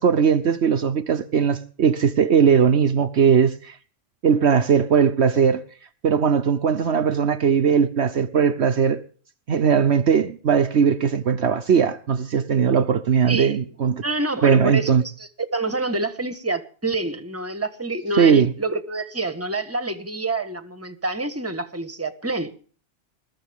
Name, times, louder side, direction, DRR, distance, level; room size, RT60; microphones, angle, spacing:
voice 1, 0.0-3.8 4.2-5.6 6.0-9.0 9.5-14.0 14.4-15.0 18.2-18.5, right 7 dB, 65° right, 1.1 m, -19 dB
voice 2, 13.3-13.6 14.0-14.9 15.2-22.5, right 2 dB, 10° right, 1.4 m, -27 dB
21.5 x 14.0 x 3.6 m
omnidirectional pair, 1.2 m